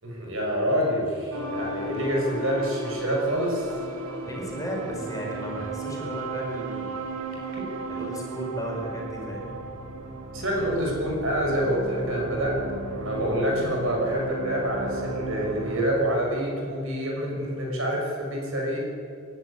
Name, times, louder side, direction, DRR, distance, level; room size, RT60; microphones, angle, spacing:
voice 1, 0.0-3.8 7.5-7.6 10.3-12.6 12.9-18.8, equal, 65° right, -1 dB, 6.3 m, -27 dB
sound 1, 1.3-15.9, right 2 dB, 90° right, 3.3 m, -35 dB
voice 2, 4.2-7.1 7.9-9.6, right 1 dB, 15° left, -2 dB, 5.0 m, -34 dB
27.5 x 11.5 x 10.0 m, 2.4 s
head